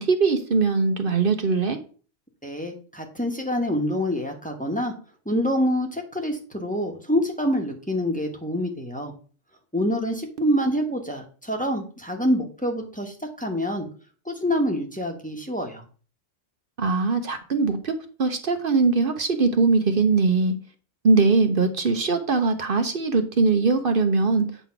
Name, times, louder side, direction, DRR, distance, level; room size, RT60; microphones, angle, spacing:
voice 1, 0.0-1.8 16.8-17.9 18.2-20.5 21.0-24.5, right 4 dB, 50° right, 7 dB, 0.9 m, -21 dB
voice 2, 2.4-4.9 5.2-9.1 9.7-13.9 14.2-15.8, equal, 5° left, 2 dB, 1.2 m, -26 dB
8.2 x 3.7 x 5.8 m, 0.40 s
omnidirectional pair, 1.3 m